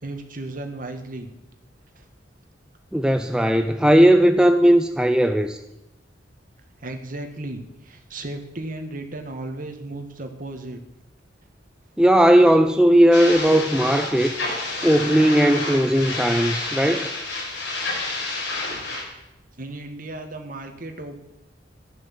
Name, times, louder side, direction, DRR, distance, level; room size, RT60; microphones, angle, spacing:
voice 1, 0.0-1.3 2.0-2.1 6.8-10.8 19.6-21.2, right 2 dB, 50° right, 5 dB, 1.9 m, -35 dB
voice 2, 2.9-5.6 12.0-14.3 14.8-17.1, equal, 5° right, 7 dB, 0.5 m, -17 dB
sound 1, 13.1-19.0, left 2 dB, 80° left, 5.2 m, -29 dB
14.0 x 11.5 x 7.4 m, 0.94 s
head